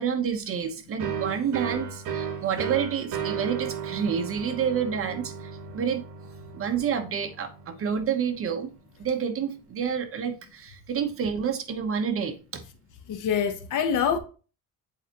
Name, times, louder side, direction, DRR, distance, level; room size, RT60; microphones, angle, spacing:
voice 1, 0.0-6.0 6.5-8.7 9.0-12.6, right 7 dB, 40° right, 0.9 m, -29 dB
sound 1, 1.0-8.5, right 7 dB, 65° right, 1.3 m, -35 dB
voice 2, 13.1-14.2, left 7 dB, 65° left, 1.1 m, -25 dB
7.7 x 4.5 x 2.8 m
cardioid pair, 155°, 34 cm